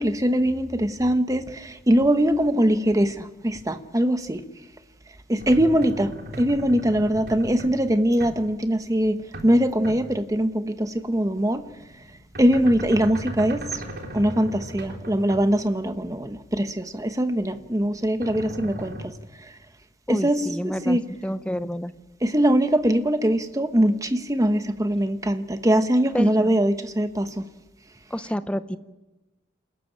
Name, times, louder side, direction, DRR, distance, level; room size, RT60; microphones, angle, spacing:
voice 1, 0.0-1.4 1.9-3.1 3.4-4.4 5.3-6.1 6.4-9.2 9.4-11.6 12.4-13.6 14.1-19.0 20.1-21.0 22.2-27.3, equal, 20° right, 1.0 m, -22 dB
sound 1, 5.4-9.6 9.8-10.3 11.1-17.1 17.5-19.0, right 1 dB, 55° right, 3.6 m, -38 dB
voice 2, 20.1-21.9 26.1-26.6 28.1-28.8, equal, 5° left, 0.7 m, -29 dB
28.5 x 13.0 x 8.9 m
head